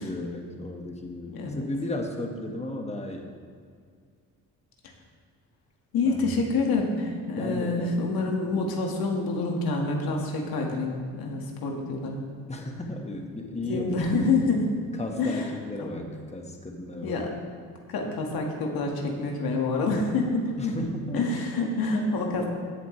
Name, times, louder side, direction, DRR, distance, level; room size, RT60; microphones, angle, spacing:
voice 1, 0.0-3.3 6.0-6.3 7.4-7.9 12.5-14.0 15.0-17.3 20.6-21.3 22.4-22.5, left 1 dB, 15° left, 2 dB, 1.7 m, -34 dB
voice 2, 1.3-1.7 5.9-12.2 13.7-14.7 15.2-15.5 15.8-16.0 17.0-17.3 17.9-20.7 21.1-22.5, left 3 dB, 70° left, 1 dB, 2.0 m, -27 dB
16.0 x 7.3 x 3.4 m, 2.1 s
supercardioid pair, 60°, 38 cm